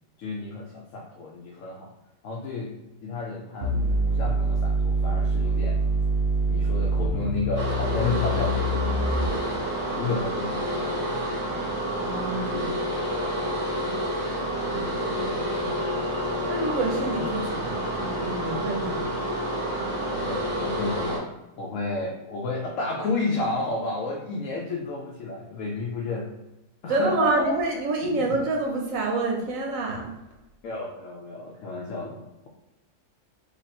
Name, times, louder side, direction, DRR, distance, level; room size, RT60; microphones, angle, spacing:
voice 1, 0.2-1.9 2.2-2.7 3.0-3.7 4.0-5.8 6.5-9.7 10.0-11.3 12.5-13.6 14.6-16.0 20.1-21.3 21.6-26.3 26.8-27.5 28.0-28.2 30.6-32.5, left 3 dB, 75° left, -1 dB, 1.0 m, -32 dB
sound 1, 3.6-9.6, right 1 dB, 60° right, 0.8 m, -25 dB
sound 2, 7.5-21.2, right 1 dB, 20° left, 1.3 m, -29 dB
voice 2, 12.0-12.7 16.5-19.0 26.9-30.1, right 2 dB, 85° right, 0 dB, 1.2 m, -27 dB
2.9 x 2.9 x 4.2 m, 0.99 s
omnidirectional pair, 1.4 m